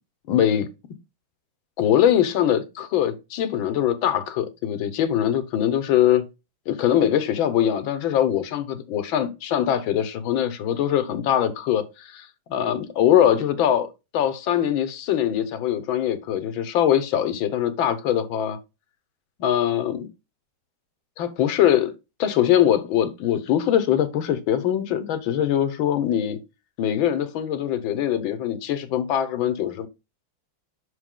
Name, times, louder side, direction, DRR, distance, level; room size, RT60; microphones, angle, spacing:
voice 1, 0.3-0.7 1.8-6.3 6.7-18.6 19.4-20.1 21.2-21.9 22.2-26.4 26.8-29.9, left 10 dB, 75° left, 1.6 m, -22 dB
6.1 x 4.9 x 3.6 m
omnidirectional pair, 2.3 m